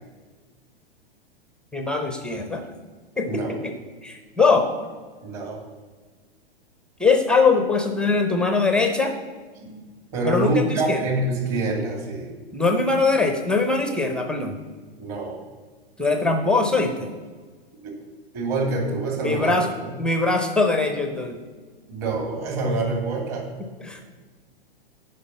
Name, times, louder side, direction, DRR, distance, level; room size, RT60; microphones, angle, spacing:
voice 1, 1.7-2.6 3.2-3.7 4.0-4.7 7.0-9.2 10.2-11.0 12.5-14.5 16.0-16.9 19.2-19.7 20.0-21.4 23.8-24.0, left 4 dB, 5° left, 6 dB, 0.4 m, -21 dB
voice 2, 3.3-3.6 5.2-5.6 9.6-9.8 10.1-12.3 15.0-15.4 17.8-17.9 18.3-19.9 21.9-23.4, right 2 dB, 40° right, 1 dB, 2.5 m, -26 dB
10.0 x 5.4 x 5.4 m, 1.4 s
figure-of-eight pair, 105°, 30 cm